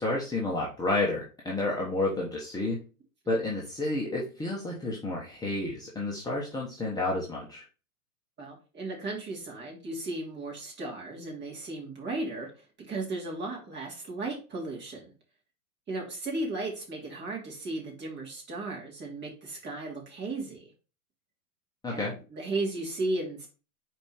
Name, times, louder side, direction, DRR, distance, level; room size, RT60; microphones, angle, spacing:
voice 1, 0.0-2.8 3.3-7.6 21.8-22.1, left 2 dB, 10° left, -4 dB, 1.1 m, -30 dB
voice 2, 8.4-15.1 15.9-20.7 21.9-23.5, right 2 dB, 25° right, -2 dB, 3.0 m, -35 dB
5.5 x 4.5 x 4.3 m, 0.34 s
hypercardioid pair, 125°, 46 cm